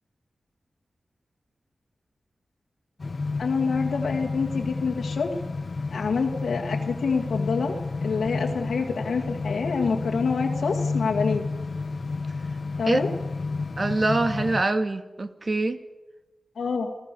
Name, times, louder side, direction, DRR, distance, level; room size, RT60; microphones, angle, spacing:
sound 1, 3.0-14.6, left 3 dB, 55° left, 1.2 m, -31 dB
voice 1, 3.4-5.3 5.9-7.7 8.0-11.4 12.8-13.1 16.6-16.9, left 5 dB, 85° left, 0 dB, 2.0 m, -26 dB
voice 2, 13.8-15.8, right 2 dB, 40° right, 8 dB, 2.0 m, -24 dB
28.0 x 17.0 x 6.9 m, 1.1 s
cardioid pair, 70°, 0 cm